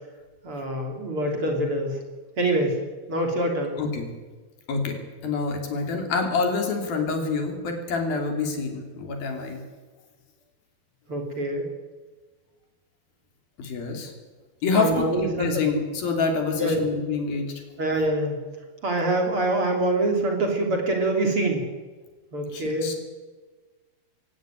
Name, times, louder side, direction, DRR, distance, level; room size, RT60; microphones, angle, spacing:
voice 1, 0.4-2.0 2.4-2.8 3.1-3.8 11.1-11.7 14.7-15.6 16.6-16.8 17.8-18.4 18.8-21.6 22.3-22.9, right 1 dB, 35° right, 2 dB, 3.8 m, -25 dB
voice 2, 5.2-9.6 13.6-14.1 14.6-17.5 22.5-22.9, left 4 dB, 70° left, 4 dB, 4.9 m, -27 dB
23.0 x 17.5 x 9.2 m, 1.4 s
omnidirectional pair, 4.4 m